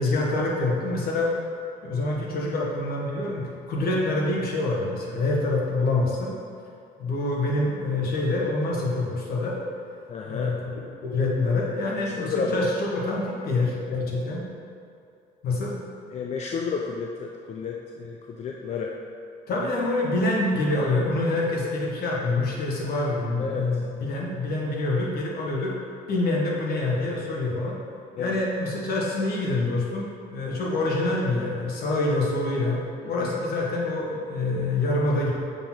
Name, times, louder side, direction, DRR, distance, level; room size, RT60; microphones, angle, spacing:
voice 1, 0.0-1.3 1.8-6.3 7.0-9.6 10.3-14.4 15.4-15.8 19.5-25.8 26.1-27.8 28.2-32.8 33.1-35.3, left 2 dB, 65° left, -3 dB, 1.6 m, -26 dB
voice 2, 10.1-10.6 12.2-12.7 16.1-19.0 23.4-23.7 28.2-28.4 33.2-33.3, left 5 dB, 40° left, 0 dB, 0.5 m, -31 dB
6.9 x 3.8 x 6.0 m, 2.5 s
cardioid pair, 110°, 17 cm